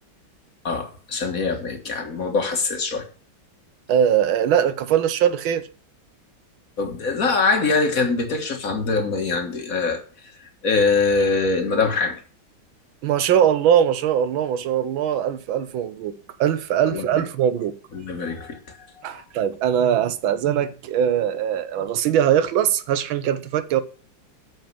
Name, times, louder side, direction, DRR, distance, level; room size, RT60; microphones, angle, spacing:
voice 1, 0.6-3.1 6.8-10.0 10.6-12.2 16.9-17.2 17.9-18.6, left 4 dB, 45° left, 1.7 m, -23 dB
voice 2, 3.9-5.6 13.0-16.1 16.4-17.7 19.0-23.8, right 9 dB, 85° right, 1.6 m, -21 dB
8.9 x 6.3 x 7.5 m
omnidirectional pair, 2.2 m